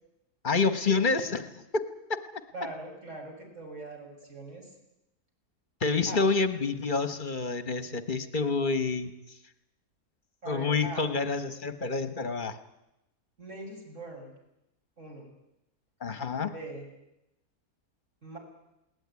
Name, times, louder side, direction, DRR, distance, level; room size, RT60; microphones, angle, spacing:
voice 1, 0.4-2.4 5.8-9.4 10.5-12.6 16.0-16.5, left 4 dB, 35° left, 11 dB, 1.4 m, -28 dB
voice 2, 2.5-4.7 6.1-6.2 10.4-11.1 13.4-14.3 15.0-15.3 16.5-16.8 18.2-18.4, right 2 dB, 50° right, 1 dB, 6.4 m, -41 dB
20.5 x 18.5 x 9.7 m, 0.89 s
omnidirectional pair, 1.6 m